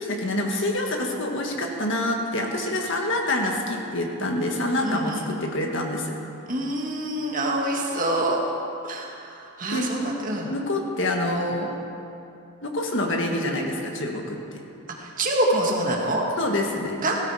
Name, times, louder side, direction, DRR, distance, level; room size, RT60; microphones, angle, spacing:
voice 1, 0.0-6.2 9.7-9.9 10.5-11.7 12.6-14.4 16.4-17.0, left 1 dB, 55° left, 1 dB, 1.7 m, -26 dB
voice 2, 4.8-5.3 6.5-8.4 8.8-10.5 11.4-11.5 15.0-16.2 17.0-17.2, right 1 dB, 35° right, -1 dB, 1.8 m, -26 dB
17.5 x 12.5 x 4.9 m, 2.7 s
head